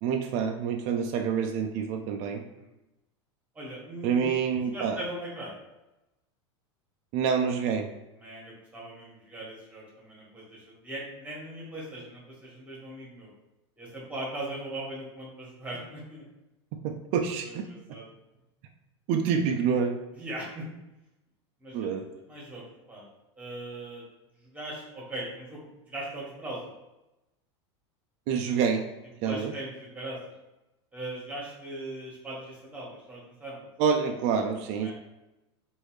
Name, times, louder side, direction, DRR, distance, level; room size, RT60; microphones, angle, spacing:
voice 1, 0.0-2.4 4.0-5.0 7.1-7.9 16.8-17.6 19.1-19.9 21.7-22.1 28.3-28.8 29.2-29.5 33.8-34.9, right 6 dB, 50° right, 5 dB, 0.4 m, -27 dB
voice 2, 3.5-4.2 4.7-5.5 8.2-13.3 13.8-16.2 17.4-18.0 20.1-20.6 21.6-21.8 22.3-23.1 23.4-24.0 24.4-26.7 29.2-30.2 30.9-33.7 34.8-34.9, right 1 dB, 10° right, -5 dB, 1.5 m, -39 dB
3.2 x 2.6 x 3.1 m, 0.97 s
hypercardioid pair, 110°, 15 cm